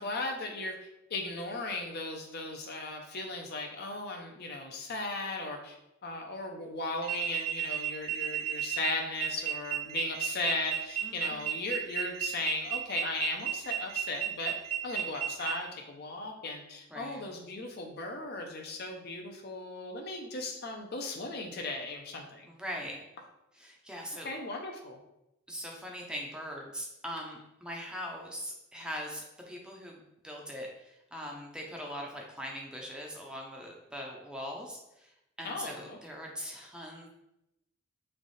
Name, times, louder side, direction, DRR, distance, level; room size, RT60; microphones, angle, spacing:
voice 1, 0.0-14.6 14.8-22.5 24.2-25.0 35.4-36.0, left 2 dB, 50° left, 2 dB, 0.6 m, -37 dB
sound 1, 7.0-15.5, right 10 dB, 75° right, 0.7 m, -33 dB
voice 2, 11.0-11.5 16.9-17.2 22.5-23.0 23.6-24.3 25.5-29.2 29.5-35.1 35.4-37.1, equal, 5° right, -1 dB, 0.5 m, -41 dB
3.6 x 3.3 x 4.0 m, 0.87 s
head